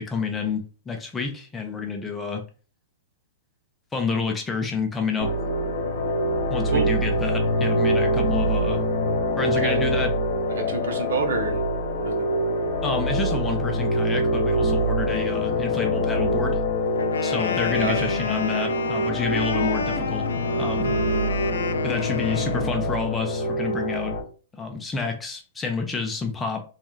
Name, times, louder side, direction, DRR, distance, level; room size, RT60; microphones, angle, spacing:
voice 1, 0.0-2.4 3.9-5.3 6.5-8.8 9.4-10.1 12.8-16.6 17.2-20.9 21.8-24.2 24.5-26.6, left 4 dB, 15° left, 4 dB, 0.5 m, -29 dB
sound 1, 5.2-24.2, equal, 65° left, 0.8 m, -25 dB
voice 2, 9.5-9.8 10.5-11.6 12.0-12.2 17.8-18.1, right 4 dB, 80° right, 4 dB, 0.7 m, -28 dB
Wind instrument woodwind instrument, 17.0-22.8, left 4 dB, 90° left, 0.3 m, -30 dB
2.4 x 2.1 x 3.0 m, 0.38 s
hypercardioid pair, 130°, 0 cm